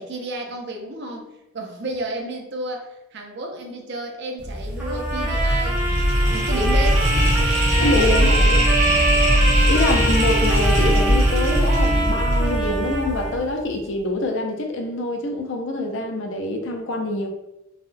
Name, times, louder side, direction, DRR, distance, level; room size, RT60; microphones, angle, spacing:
voice 1, 0.0-5.8 6.3-7.1 7.7-8.7, right 1 dB, 50° right, 2 dB, 0.5 m, -31 dB
sound 1, 4.4-13.5, equal, 70° right, 1.2 m, -20 dB
Trumpet, 4.8-13.4, right 1 dB, 10° right, 0.6 m, -26 dB
sound 2, 7.1-12.1, right 2 dB, 90° left, 0.8 m, -27 dB
voice 2, 7.8-8.3 9.6-17.3, left 1 dB, 60° left, 3 dB, 0.5 m, -25 dB
3.4 x 2.2 x 2.6 m, 0.88 s
head